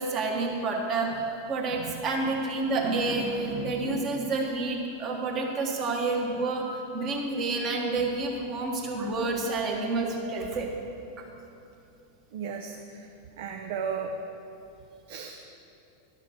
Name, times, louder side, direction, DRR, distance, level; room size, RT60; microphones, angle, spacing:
voice 1, 0.0-6.6 6.9-10.7, right 3 dB, 35° right, 0 dB, 1.7 m, -29 dB
voice 2, 12.3-13.1 13.4-14.1 15.1-15.5, right 6 dB, 55° right, 2 dB, 0.7 m, -35 dB
11.5 x 6.6 x 6.4 m, 2.7 s
figure-of-eight pair, 90°, 0 cm